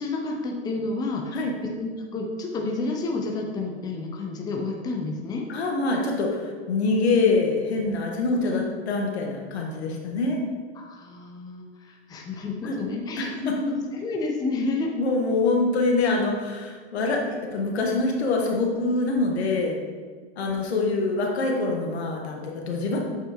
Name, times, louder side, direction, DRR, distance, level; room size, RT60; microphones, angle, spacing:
voice 1, 0.0-1.4 1.8-5.4 10.8-14.9, left 3 dB, 10° left, 0 dB, 0.6 m, -30 dB
voice 2, 5.5-10.4 12.6-12.8 13.2-13.5 14.9-19.8 20.4-23.0, left 3 dB, 75° left, 0 dB, 1.5 m, -25 dB
7.8 x 4.5 x 3.0 m, 1.5 s
hypercardioid pair, 120°, 33 cm